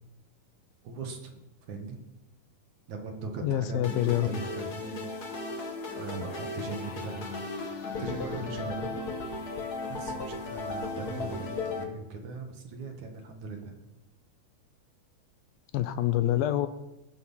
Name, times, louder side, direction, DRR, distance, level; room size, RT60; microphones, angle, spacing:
voice 1, 0.8-2.0 2.9-5.7 6.0-7.4 8.0-9.0 9.9-13.8, right 3 dB, 55° right, 3 dB, 2.7 m, -39 dB
voice 2, 3.4-4.3 15.7-16.7, left 13 dB, 80° left, 12 dB, 2.3 m, -26 dB
sound 1, 3.8-11.8, left 3 dB, 50° left, 1.1 m, -36 dB
20.0 x 9.1 x 5.7 m, 0.97 s
omnidirectional pair, 4.4 m